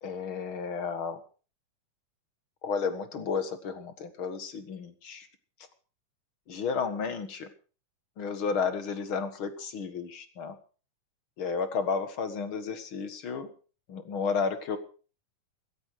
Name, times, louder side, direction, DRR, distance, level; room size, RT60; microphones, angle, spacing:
voice 1, 0.0-1.2 2.6-5.3 6.5-7.5 8.2-10.5 11.4-13.5 13.9-14.8, left 5 dB, 50° left, 10 dB, 1.9 m, -32 dB
16.0 x 14.5 x 4.7 m, 0.37 s
omnidirectional pair, 3.8 m